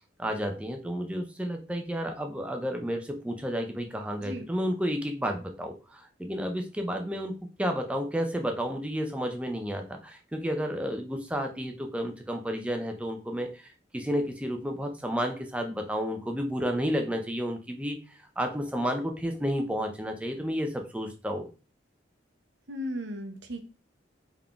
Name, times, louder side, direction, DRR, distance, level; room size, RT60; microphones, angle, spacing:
voice 1, 0.2-7.3 7.6-21.5, equal, 5° right, 4 dB, 0.4 m, -31 dB
voice 2, 22.7-23.7, equal, 65° right, 5 dB, 0.7 m, -35 dB
3.7 x 3.6 x 2.2 m, 0.34 s
head